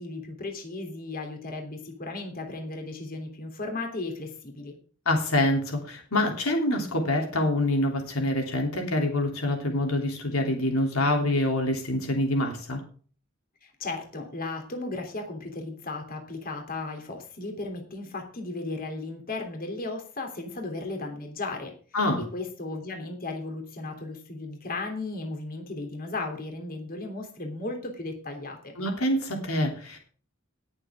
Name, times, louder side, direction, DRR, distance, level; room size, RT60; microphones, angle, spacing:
voice 1, 0.0-4.8 13.6-21.7 22.3-28.7, left 2 dB, 45° left, 3 dB, 3.2 m, -35 dB
voice 2, 5.0-12.8 21.9-22.2 28.8-30.0, left 1 dB, 85° left, 2 dB, 3.2 m, -26 dB
19.5 x 7.3 x 3.6 m, 0.42 s
head